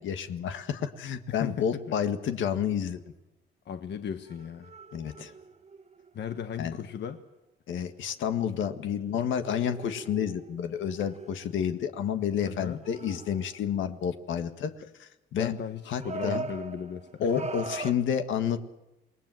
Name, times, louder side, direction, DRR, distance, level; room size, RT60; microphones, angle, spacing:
voice 1, 0.0-3.0 4.9-5.3 6.6-6.8 7.7-14.7 15.0-15.5 15.9-16.5 17.2-18.6, left 8 dB, 75° left, 8 dB, 1.8 m, -30 dB
voice 2, 1.3-1.9 3.6-4.7 6.1-7.2 12.4-12.8 15.4-17.5, left 8 dB, 60° left, 8 dB, 1.3 m, -36 dB
sound 1, 2.7-2.9 4.2-6.8 7.1-7.2 8.9-9.0 9.4-12.0 12.6-13.7 16.0-17.9, right 4 dB, 35° right, 1.5 m, -41 dB
27.5 x 20.0 x 7.7 m, 0.96 s
cardioid pair, 90°, 20 cm